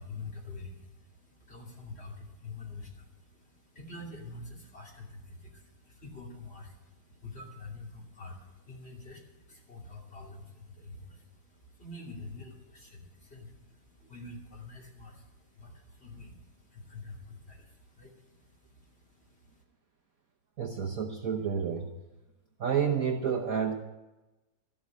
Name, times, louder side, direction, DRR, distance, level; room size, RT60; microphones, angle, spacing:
voice 1, 0.0-19.6, left 3 dB, 30° left, -2 dB, 3.0 m, -47 dB
voice 2, 20.6-21.9 22.6-23.7, right 7 dB, 55° right, 2 dB, 1.2 m, -29 dB
13.0 x 7.5 x 9.8 m, 1.1 s
omnidirectional pair, 2.1 m